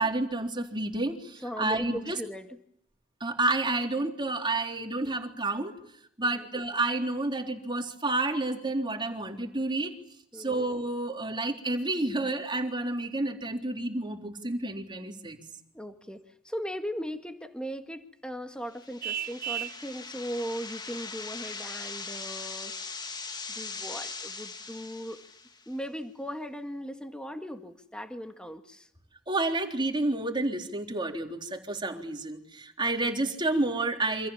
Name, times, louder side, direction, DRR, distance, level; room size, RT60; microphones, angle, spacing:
voice 1, 0.0-2.2 3.2-5.7 6.2-10.0 10.3-15.4 29.3-34.3, right 2 dB, 25° right, 3 dB, 3.7 m, -30 dB
voice 2, 1.4-2.6 6.2-6.4 10.3-10.6 15.7-22.7 23.5-25.2 25.7-28.9, equal, 5° left, 6 dB, 1.9 m, -38 dB
sound 1, 18.7-25.7, left 4 dB, 20° left, 1.9 m, -40 dB
Vehicle horn car horn honking, 19.0-19.8, right 9 dB, 50° right, 1.1 m, -33 dB
28.0 x 26.5 x 7.3 m, 0.70 s
head